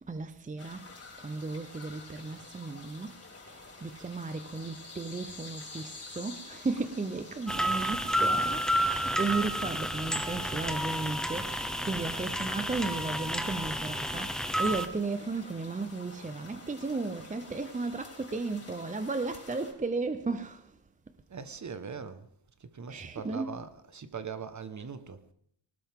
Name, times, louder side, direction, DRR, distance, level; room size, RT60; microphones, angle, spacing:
voice 1, 0.0-0.9 1.2-3.2 3.5-20.8 22.9-23.6, right 3 dB, 20° right, 0.7 m, -35 dB
sound 1, 0.6-19.7, left 3 dB, 35° left, 4.2 m, -49 dB
sound 2, 7.5-14.9, equal, ahead, 1.1 m, -31 dB
voice 2, 21.3-22.3 22.6-25.2, right 6 dB, 40° right, 1.4 m, -41 dB
20.5 x 18.5 x 3.7 m
wide cardioid pair, 120°, 43 cm